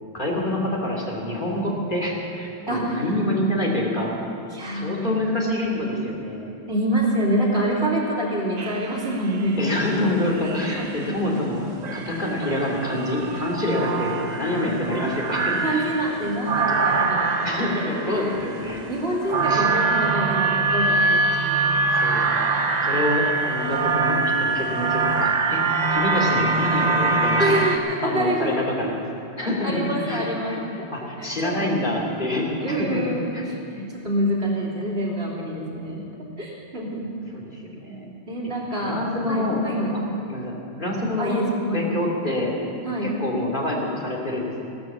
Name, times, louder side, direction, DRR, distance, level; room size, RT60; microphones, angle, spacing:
voice 1, 0.1-4.2 4.7-6.5 9.6-15.9 17.4-18.8 19.5-19.7 21.9-22.2 22.8-25.6 25.9-27.5 28.0-29.1 29.4-30.6 30.9-33.4 37.3-38.1 38.8-39.6 40.3-41.4 41.7-42.6 43.0-44.6, left 1 dB, 50° left, -3 dB, 2.7 m, -26 dB
voice 2, 2.7-3.1 4.5-5.1 6.7-9.6 10.7-11.2 14.3-15.0 15.4-18.3 18.9-21.7 27.4-28.5 29.6-31.8 32.6-36.0 36.4-37.1 38.3-39.0 39.3-40.1 41.2-41.9 42.8-43.1, right 1 dB, 80° right, -4 dB, 3.4 m, -27 dB
sound 1, 8.6-9.4 10.4-11.1 11.8-27.8, right 3 dB, 45° right, 1.0 m, -24 dB
16.5 x 12.0 x 7.2 m, 2.7 s
omnidirectional pair, 1.1 m